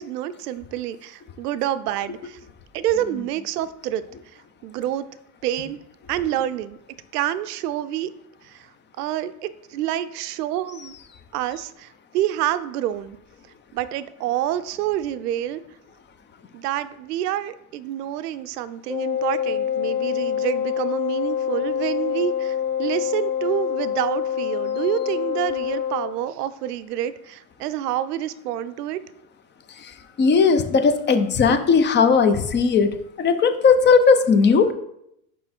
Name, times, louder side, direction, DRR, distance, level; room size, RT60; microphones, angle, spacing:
voice 1, 0.0-2.4 2.7-4.0 4.6-5.0 5.4-5.8 6.1-6.8 7.1-8.1 8.4-8.7 9.0-10.9 11.3-13.2 13.7-15.6 16.5-29.0, right 12 dB, 85° right, 14 dB, 0.6 m, -27 dB
Wind instrument woodwind instrument, 18.9-26.2, left 9 dB, 90° left, 2.3 m, -26 dB
voice 2, 29.7-34.7, left 5 dB, 25° left, 9 dB, 0.6 m, -18 dB
5.5 x 4.9 x 4.3 m, 0.76 s
hypercardioid pair, 100°, 45 cm